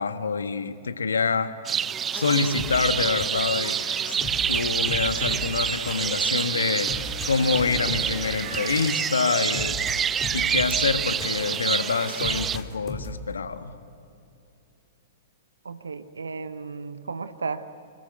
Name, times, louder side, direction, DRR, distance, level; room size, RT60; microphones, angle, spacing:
voice 1, 0.0-1.5 2.1-3.8 4.1-6.9 7.3-9.8 10.3-13.7, left 5 dB, 75° left, 9 dB, 1.5 m, -26 dB
sound 1, 1.6-12.6, right 8 dB, 20° right, 0.5 m, -27 dB
sound 2, 2.5-11.8 12.2-13.3, left 2 dB, 25° left, 3.7 m, -37 dB
sound 3, 3.0-12.5, right 4 dB, 60° right, 6.5 m, -43 dB
voice 2, 15.6-17.7, right 4 dB, 75° right, 11 dB, 1.1 m, -34 dB
25.5 x 22.0 x 7.9 m, 2.6 s
figure-of-eight pair, 105°, 0 cm